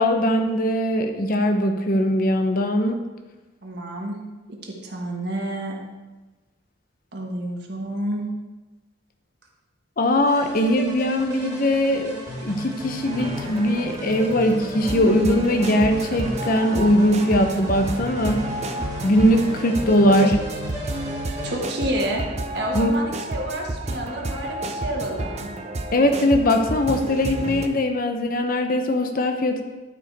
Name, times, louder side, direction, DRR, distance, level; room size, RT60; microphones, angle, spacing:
voice 1, 0.0-3.0 10.0-12.1 12.4-18.4 19.0-20.4 22.7-22.9 25.9-29.6, left 1 dB, 45° left, 6 dB, 0.7 m, -20 dB
voice 2, 3.6-4.2 4.6-5.8 7.1-8.2 19.9-20.1 21.4-22.3 22.5-25.5, right 1 dB, 60° right, -1 dB, 1.4 m, -29 dB
sound 1, 10.3-21.6, equal, 15° right, 2.0 m, -35 dB
sound 2, 13.0-27.7, right 2 dB, 35° right, 0.6 m, -31 dB
11.5 x 5.0 x 4.6 m, 1.2 s
head